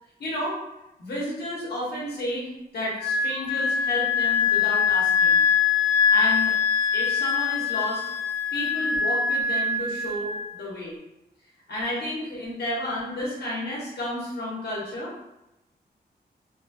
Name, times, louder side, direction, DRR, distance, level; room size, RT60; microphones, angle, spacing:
voice 1, 0.2-0.6 1.0-5.4 6.1-6.5 6.9-8.0 8.5-10.9 11.7-15.1, left 1 dB, 75° left, -6 dB, 1.2 m, -31 dB
Wind instrument woodwind instrument, 3.0-10.4, left 6 dB, 45° left, 0.6 m, -23 dB
2.9 x 2.4 x 2.8 m, 0.91 s
wide cardioid pair, 145°, 17 cm